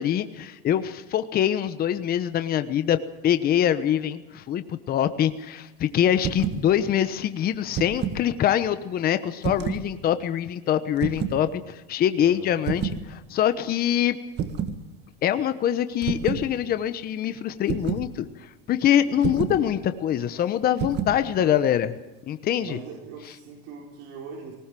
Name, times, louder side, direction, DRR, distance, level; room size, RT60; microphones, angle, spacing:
voice 1, 0.0-3.0 3.2-14.2 15.2-21.9 22.3-22.8, left 10 dB, 30° left, 11 dB, 1.1 m, -24 dB
sound 1, 6.2-6.6 7.5-8.2 9.4-9.9 11.0-11.4 12.7-13.0 14.4-14.8 16.0-16.5 17.7-18.1 19.2-19.6 20.8-21.2, right 8 dB, 35° right, 1.9 m, -28 dB
voice 2, 12.2-12.5 19.0-19.2 21.4-21.6 22.6-24.5, right 6 dB, 55° right, -2 dB, 4.6 m, -40 dB
20.0 x 19.5 x 7.6 m, 1.1 s
supercardioid pair, 140°, 29 cm